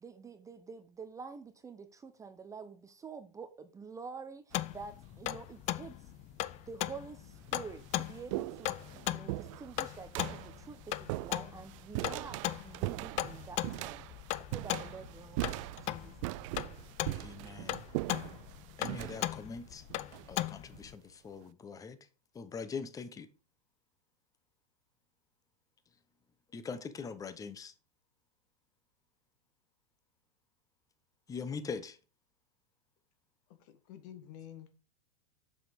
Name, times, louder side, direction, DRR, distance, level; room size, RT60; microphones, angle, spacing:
voice 1, 0.0-6.1 6.7-8.8 9.1-14.1 14.5-16.4, right 5 dB, 15° right, 0.7 m, -48 dB
sound 1, 4.5-20.9, left 15 dB, 35° left, 0.5 m, -38 dB
sound 2, 4.5-5.0 5.9-6.0 6.8-6.9 7.3-20.9, right 20 dB, 55° right, 0.4 m, -41 dB
voice 2, 17.1-17.8 18.8-19.8 20.3-22.0 22.3-23.3 26.5-27.7 31.3-32.0, left 5 dB, 20° left, 0.9 m, -42 dB
voice 3, 33.5-34.7, left 10 dB, 55° left, 1.6 m, -50 dB
7.1 x 6.0 x 5.1 m
hypercardioid pair, 115°, 19 cm